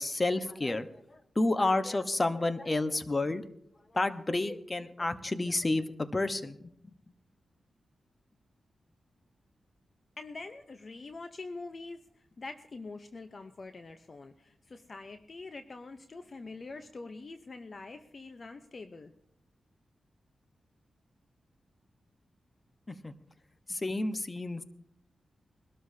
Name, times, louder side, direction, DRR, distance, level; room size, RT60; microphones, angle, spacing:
voice 1, 0.0-3.4 3.9-6.7 22.9-23.1 23.7-24.6, left 2 dB, 30° left, 10 dB, 1.1 m, -30 dB
voice 2, 10.2-19.1, left 3 dB, 45° left, 8 dB, 0.8 m, -45 dB
22.5 x 13.0 x 2.8 m, 0.74 s
cardioid pair, 70°, 0 cm